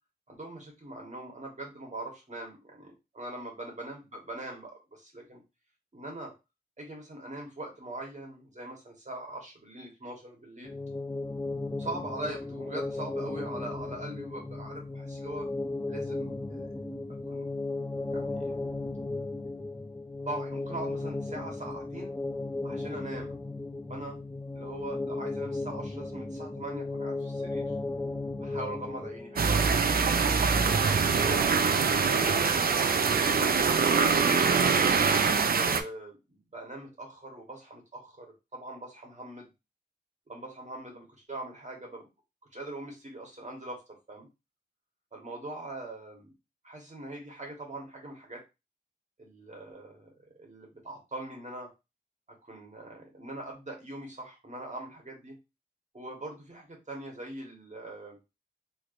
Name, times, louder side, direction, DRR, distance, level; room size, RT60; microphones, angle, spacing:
voice 1, 0.3-5.4 5.9-6.3 6.8-10.7 11.8-15.5 15.9-16.7 17.3-17.5 18.1-18.6 19.2-19.3 20.2-22.1 22.6-23.3 23.9-24.2 24.5-27.7 28.4-30.0 30.6-31.4 32.0-32.9 35.4-39.5 40.3-42.1 42.5-43.8 44.1-44.3 45.1-46.3 46.6-48.4 49.2-50.1 50.4-51.7 52.4-55.3 55.9-58.2, right 2 dB, 45° right, 0 dB, 1.3 m, -42 dB
sound 1, 10.6-29.5, left 2 dB, 10° left, 0.3 m, -35 dB
sound 2, 29.4-35.8, right 5 dB, 60° right, 0.4 m, -24 dB
3.1 x 3.1 x 2.5 m, 0.25 s
wide cardioid pair, 90°, 17 cm